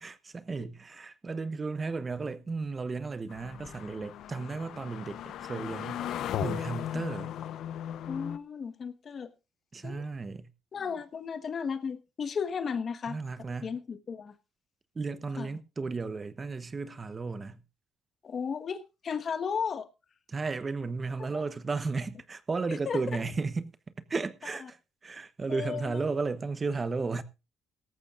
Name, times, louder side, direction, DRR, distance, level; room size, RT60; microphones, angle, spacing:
voice 1, 0.0-6.0 6.4-7.3 9.7-10.5 13.1-13.7 14.9-17.6 20.3-23.7 24.1-27.2, right 4 dB, 30° right, 1.0 m, -34 dB
sound 1, 3.3-8.4, left 10 dB, 75° left, 0.9 m, -37 dB
voice 2, 8.1-9.3 9.8-10.0 10.7-13.2 13.6-14.3 15.4-15.5 18.2-19.9 21.3-21.4 22.7-23.0 25.5-26.0, left 6 dB, 45° left, 1.3 m, -34 dB
17.5 x 14.0 x 2.5 m
cardioid pair, 95°, 0 cm